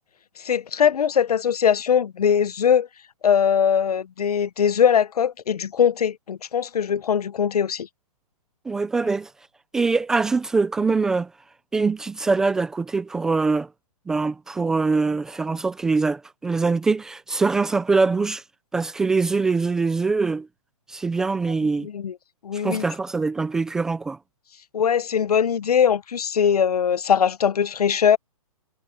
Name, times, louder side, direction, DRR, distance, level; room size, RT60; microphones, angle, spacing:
voice 1, 0.4-2.9 3.2-7.9 21.8-22.2 22.4-22.8 24.7-28.2, left 8 dB, 85° left, 0.9 m, -21 dB
voice 2, 8.7-9.3 9.7-11.3 11.7-13.7 14.1-18.4 18.7-20.5 20.9-21.9 22.6-24.2, right 4 dB, 5° right, 0.4 m, -23 dB
hypercardioid pair, 165°, 19 cm